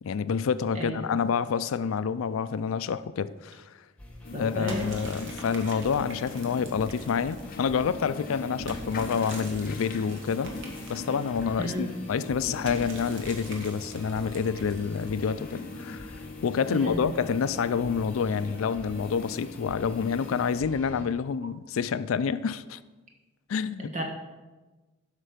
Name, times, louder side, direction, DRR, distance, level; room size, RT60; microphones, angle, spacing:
voice 1, 0.0-3.7 4.3-10.5 10.9-16.1 16.4-22.8 23.5-24.0, left 6 dB, 80° left, 0.4 m, -28 dB
voice 2, 0.7-1.2 4.3-4.9 11.6-11.9 16.7-17.1 23.9-24.0, equal, 35° right, 1.5 m, -33 dB
sound 1, 4.0-21.1, equal, 5° left, 1.5 m, -45 dB
sound 2, 4.2-20.6, left 3 dB, 45° left, 0.7 m, -41 dB
sound 3, 4.7-7.6 8.7-11.7 12.6-15.3, right 2 dB, 65° right, 1.6 m, -44 dB
12.0 x 5.6 x 5.0 m
head